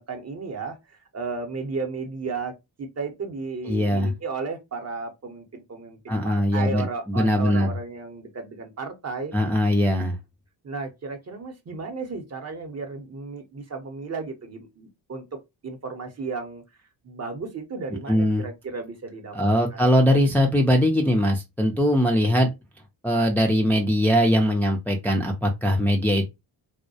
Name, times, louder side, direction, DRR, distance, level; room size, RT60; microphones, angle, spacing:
voice 1, 0.0-9.3 10.6-16.6 17.0-19.8, right 4 dB, 35° right, 0.8 m, -34 dB
voice 2, 3.7-4.1 6.1-7.7 9.3-10.1 18.1-18.4 19.3-22.5 23.0-26.3, equal, 5° left, 0.4 m, -21 dB
2.2 x 2.1 x 2.6 m
cardioid pair, 70°, 45 cm